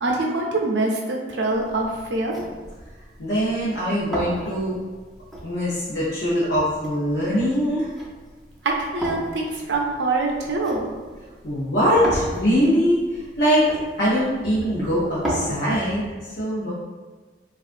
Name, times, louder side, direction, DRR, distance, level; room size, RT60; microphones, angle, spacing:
voice 1, 0.0-2.3 8.6-10.9, right 2 dB, 85° right, 0 dB, 0.5 m, -24 dB
sound 1, 1.5-15.4, right 1 dB, ahead, 0.5 m, -36 dB
voice 2, 3.2-4.8 5.4-7.9 11.4-13.7 14.0-16.7, equal, 85° left, -9 dB, 0.7 m, -22 dB
3.5 x 2.4 x 2.5 m, 1.3 s
head